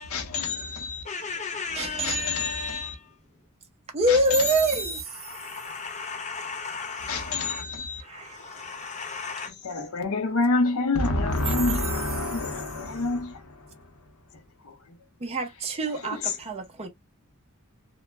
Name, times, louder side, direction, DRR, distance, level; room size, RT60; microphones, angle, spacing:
voice 1, 0.1-1.0 2.0-2.9 4.1-5.0 7.1-8.0 9.6-13.9 14.6-14.8 15.9-16.4, left 3 dB, 70° left, 0.6 m, -28 dB
voice 2, 1.0-3.1 5.1-7.6 8.0-9.5, left 5 dB, 35° left, 0.8 m, -35 dB
voice 3, 1.7-2.7 3.9-5.1 8.0-8.6 15.2-16.9, right 1 dB, 30° right, 0.6 m, -26 dB
2.2 x 2.0 x 3.1 m
head